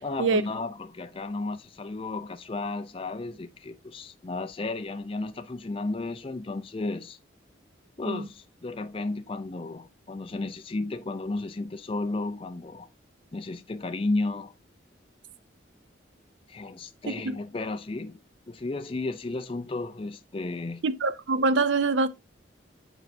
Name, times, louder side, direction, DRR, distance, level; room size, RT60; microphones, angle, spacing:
voice 1, 0.0-7.2 8.0-12.9 13.3-14.5 16.5-18.2 18.5-20.8, left 2 dB, 30° left, 0.4 m, -33 dB
voice 2, 20.8-22.1, right 3 dB, 80° right, 0.6 m, -24 dB
8.0 x 4.5 x 2.6 m
head